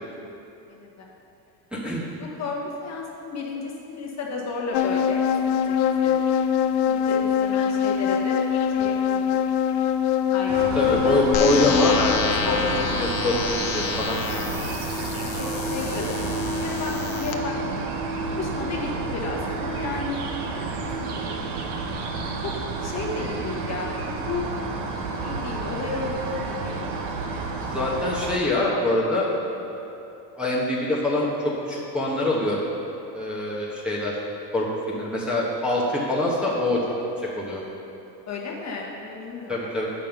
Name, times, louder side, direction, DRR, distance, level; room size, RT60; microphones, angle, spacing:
voice 1, 0.7-1.1 2.2-5.7 6.0-6.1 6.9-8.4 8.7-9.3 10.3-11.0 14.2-14.8 15.2-16.2 16.6-17.9 18.3-20.3 20.8-21.5 22.4-22.5 22.8-24.5 25.2-26.9 38.3-39.5, left 4 dB, 35° left, -2 dB, 1.2 m, -33 dB
voice 2, 1.7-2.0 10.7-14.2 27.7-29.3 29.7-29.8 30.4-32.6 33.1-34.2 34.5-36.8 37.2-37.6 39.5-39.9, left 1 dB, ahead, -6 dB, 1.0 m, -25 dB
sound 1, 4.7-12.2, left 8 dB, 55° left, 0.5 m, -23 dB
sound 2, 10.5-28.4, right 3 dB, 55° right, 1.0 m, -30 dB
sound 3, 11.3-17.3, left 6 dB, 80° left, 1.0 m, -30 dB
7.2 x 5.4 x 5.9 m, 3.0 s
supercardioid pair, 120°, 49 cm